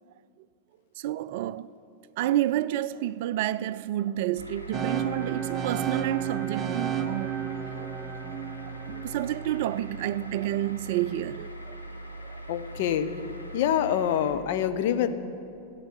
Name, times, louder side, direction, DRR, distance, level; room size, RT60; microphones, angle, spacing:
voice 1, 1.0-1.7 2.2-7.4 7.7-7.9 8.9-11.8 12.2-12.4, right 13 dB, 50° right, 0.3 m, -29 dB
sound 1, 4.4-14.3, right 1 dB, 85° left, 1.3 m, -41 dB
sound 2, 4.7-10.7, right 8 dB, 25° right, 0.7 m, -33 dB
voice 2, 12.5-13.2 13.5-15.1, left 9 dB, 50° left, 0.8 m, -26 dB
14.5 x 9.0 x 8.3 m
figure-of-eight pair, 90°, 0 cm